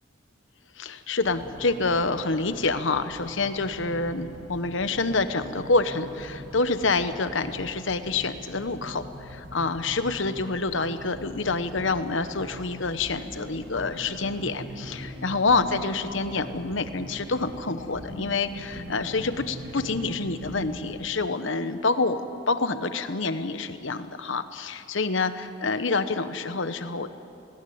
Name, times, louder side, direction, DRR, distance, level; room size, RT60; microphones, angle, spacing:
voice 1, 0.8-27.1, left 3 dB, 70° left, 11 dB, 1.0 m, -27 dB
sound 1, 1.2-20.9, equal, 70° right, 6.2 m, -42 dB
19.5 x 18.5 x 9.4 m, 2.7 s
head